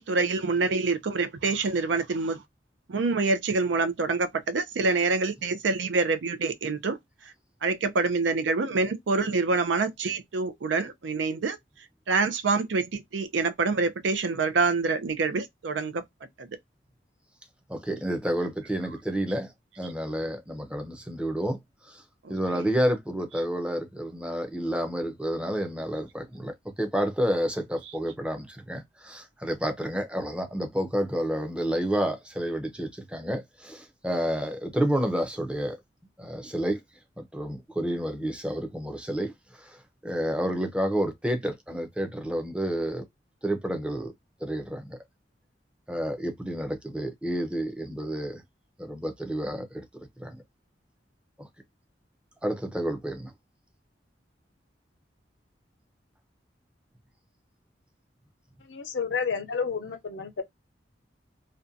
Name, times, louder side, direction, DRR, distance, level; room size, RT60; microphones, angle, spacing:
voice 1, 0.0-2.4 2.9-7.0 7.6-11.6 12.1-16.0 16.4-16.5 22.2-22.6, right 3 dB, 85° right, 0.5 m, -26 dB
voice 2, 17.7-19.5 19.8-21.6 21.9-22.0 22.3-26.5 26.8-35.8 36.2-36.8 37.2-39.3 39.7-39.8 40.0-43.0 43.4-44.1 44.4-45.0 45.9-48.4 48.8-49.8 50.2-50.4 51.4-51.5 52.4-53.3, equal, 5° right, 0.5 m, -30 dB
voice 3, 58.7-60.4, left 5 dB, 85° left, 0.6 m, -30 dB
2.5 x 2.2 x 2.5 m
head